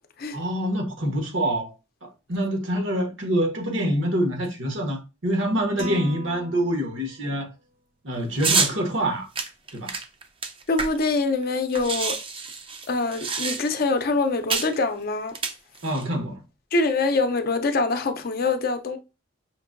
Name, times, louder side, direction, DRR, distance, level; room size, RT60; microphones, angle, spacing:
voice 1, 0.3-1.7 2.0-7.5 8.0-9.3 9.7-10.0 15.8-16.4, right 1 dB, 70° right, 1.2 m, -26 dB
sound 1, 5.8-7.3, left 1 dB, 45° right, 0.9 m, -37 dB
sound 2, 8.4-8.7 9.3-11.2 11.4-11.5 11.7-13.9 14.5-14.7 15.3-16.0, right 5 dB, 25° right, 0.5 m, -27 dB
voice 2, 10.7-12.2 12.9-15.4 16.7-19.0, left 3 dB, 50° left, 0.5 m, -24 dB
5.8 x 2.7 x 2.5 m
head